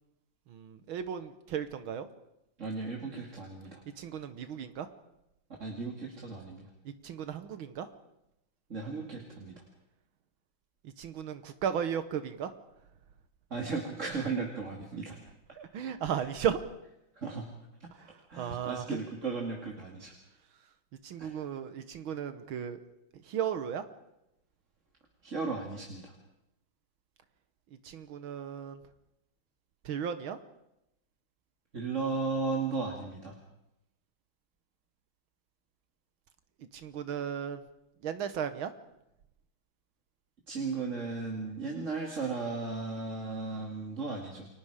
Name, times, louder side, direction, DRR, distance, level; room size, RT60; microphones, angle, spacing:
voice 1, 0.5-2.1 4.0-4.9 6.9-7.9 10.8-12.5 15.5-16.6 17.9-19.1 21.0-22.8 23.1-23.8 27.8-28.8 29.8-30.4 36.6-37.6 38.0-38.7, right 8 dB, 80° right, 10 dB, 2.0 m, -35 dB
voice 2, 2.6-3.8 5.6-6.6 8.7-9.6 13.5-15.2 17.2-17.5 18.3-20.1 21.2-21.3 25.2-26.1 31.7-33.3 40.5-44.5, right 4 dB, 35° right, 0 dB, 2.8 m, -35 dB
29.5 x 23.0 x 5.0 m, 0.86 s
omnidirectional pair, 2.2 m